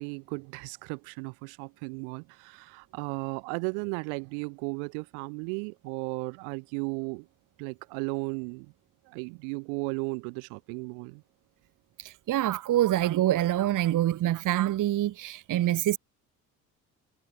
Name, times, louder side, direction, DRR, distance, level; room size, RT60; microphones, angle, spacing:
voice 1, 0.0-7.3 7.6-8.7 9.1-11.2, right 40 dB or more, 65° right, 2.2 m, -35 dB
voice 2, 12.0-16.0, right 13 dB, 45° right, 1.2 m, -26 dB
figure-of-eight pair, 50°, 45 cm